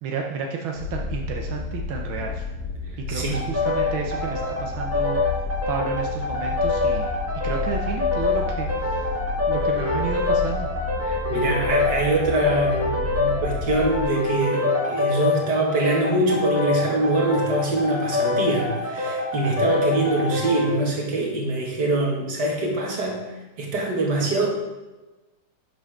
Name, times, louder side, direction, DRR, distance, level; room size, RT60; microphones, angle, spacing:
voice 1, 0.0-2.5 3.1-5.2 5.7-7.1 7.4-9.1 9.5-10.7, right 5 dB, 85° right, 1 dB, 1.7 m, -31 dB
sound 1, 0.7-14.0, left 4 dB, 55° left, 2.0 m, -31 dB
voice 2, 3.1-3.4 11.0-23.2 23.6-24.5, right 2 dB, 55° right, -1 dB, 2.5 m, -24 dB
sound 2, 3.3-20.8, left 3 dB, 10° right, 1.5 m, -26 dB
11.0 x 7.7 x 3.7 m, 1.1 s
omnidirectional pair, 2.2 m